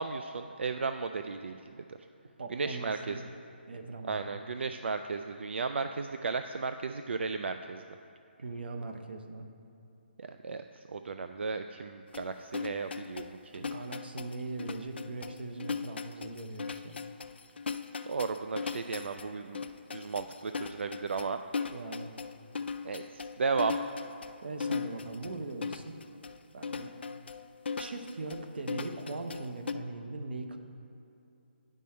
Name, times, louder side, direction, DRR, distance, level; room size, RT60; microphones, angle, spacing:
voice 1, 0.0-1.8 2.5-3.2 4.0-7.8 10.2-13.6 18.0-21.4 22.8-23.8, right 4 dB, 80° right, 8 dB, 0.3 m, -35 dB
voice 2, 2.4-3.2 3.7-4.3 8.4-9.5 13.6-17.0 21.7-22.1 24.4-25.9 26.5-26.9 27.8-30.6, right 3 dB, 60° right, 6 dB, 0.8 m, -40 dB
sound 1, 12.1-29.7, left 5 dB, 65° left, 0.4 m, -38 dB
9.5 x 5.4 x 4.3 m, 2.8 s
hypercardioid pair, 180°, 6 cm